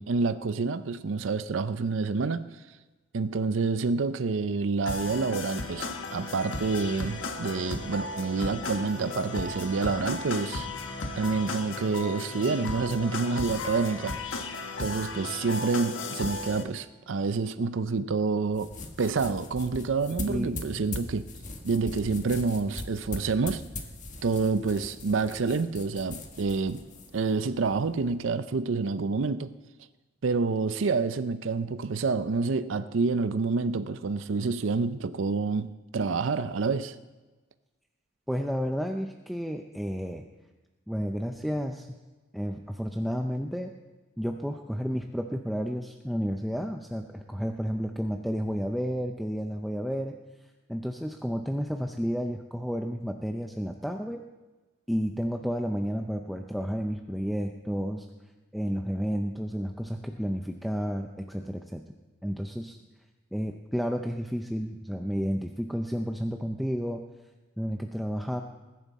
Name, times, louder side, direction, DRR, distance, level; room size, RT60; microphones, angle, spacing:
voice 1, 0.0-2.5 3.1-10.7 11.2-14.2 14.8-21.2 21.6-23.6 24.2-26.8 27.1-29.5 30.2-37.0, right 4 dB, 75° right, 0.5 m, -28 dB
sound 1, 4.9-16.6, left 3 dB, 80° left, 1.4 m, -35 dB
sound 2, 18.5-28.1, left 2 dB, 40° left, 1.5 m, -41 dB
voice 2, 20.2-20.8 38.3-40.2 40.9-42.0 42.3-43.7 44.2-50.1 50.7-54.2 54.9-58.1 58.5-61.8 62.2-62.8 63.3-67.0 67.6-68.4, equal, ahead, 0.5 m, -31 dB
20.5 x 11.0 x 4.2 m
head